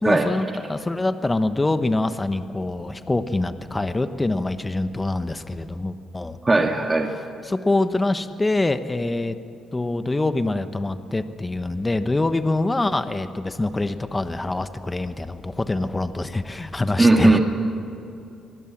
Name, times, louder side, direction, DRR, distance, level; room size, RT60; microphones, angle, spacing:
voice 1, 0.0-6.4 7.4-9.4 9.7-17.4, left 2 dB, 20° left, 10 dB, 1.2 m, -25 dB
voice 2, 6.4-7.1 17.0-17.4, right 2 dB, 20° right, 3 dB, 1.8 m, -17 dB
25.0 x 19.5 x 7.4 m, 2.7 s
cardioid pair, 90°, 0 cm